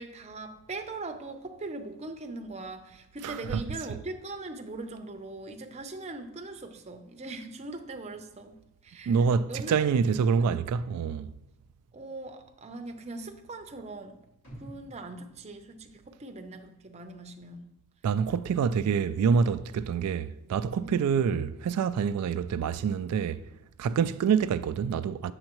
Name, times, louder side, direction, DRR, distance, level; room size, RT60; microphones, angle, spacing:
voice 1, 0.0-8.6 8.8-9.9 10.4-10.5 11.9-14.2 14.6-17.7 20.8-21.1, right 2 dB, 30° right, 0.6 m, -41 dB
voice 2, 3.2-3.6 9.1-11.3 18.0-23.4 23.8-25.3, right 6 dB, 90° right, 0.3 m, -26 dB
sound 1, 14.4-16.6 17.0-17.1, equal, 60° left, 2.7 m, -50 dB
8.6 x 6.4 x 3.0 m
head